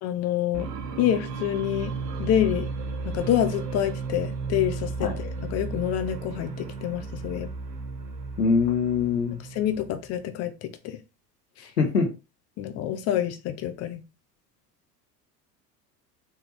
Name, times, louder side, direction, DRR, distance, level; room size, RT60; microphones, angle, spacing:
voice 1, 0.0-0.7 1.0-1.9 2.2-2.7 3.0-7.5 9.5-11.0 11.6-11.7 12.6-14.0, left 11 dB, 35° left, 9 dB, 0.6 m, -27 dB
sound 1, 0.5-10.1, right 4 dB, 85° right, 0.6 m, -34 dB
voice 2, 8.4-9.4 11.8-12.1, left 5 dB, 85° left, 3 dB, 1.0 m, -23 dB
3.7 x 2.8 x 3.1 m, 0.29 s
figure-of-eight pair, 70°, 47 cm